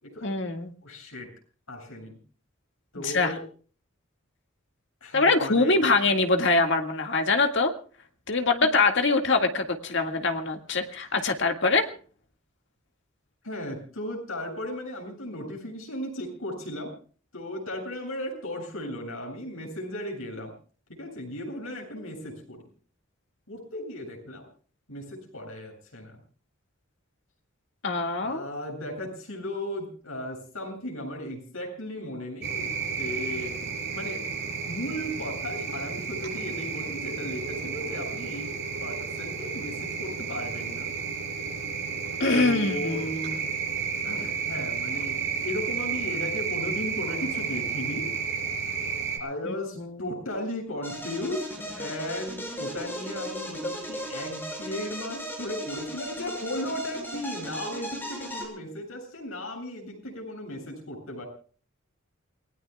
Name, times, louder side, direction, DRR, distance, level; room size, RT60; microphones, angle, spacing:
voice 1, 0.2-0.7 3.0-3.3 5.1-7.7 8.3-11.9 27.8-28.4 42.2-43.4 49.8-50.1, left 3 dB, 60° left, 5 dB, 2.0 m, -24 dB
voice 2, 0.8-1.3 1.7-2.2 2.9-3.4 5.0-5.8 13.4-16.9 17.3-20.5 20.9-22.6 23.5-24.5 24.9-26.2 28.2-32.7 33.0-33.6 33.9-34.2 34.6-40.9 42.3-43.0 44.0-45.2 45.4-48.1 49.2-61.3, left 1 dB, 85° left, 2 dB, 7.9 m, -36 dB
sound 1, 32.4-49.2, right 6 dB, 55° right, 6.9 m, -32 dB
sound 2, 50.8-58.5, equal, 10° left, 6.1 m, -37 dB
28.5 x 19.5 x 2.4 m, 0.42 s
head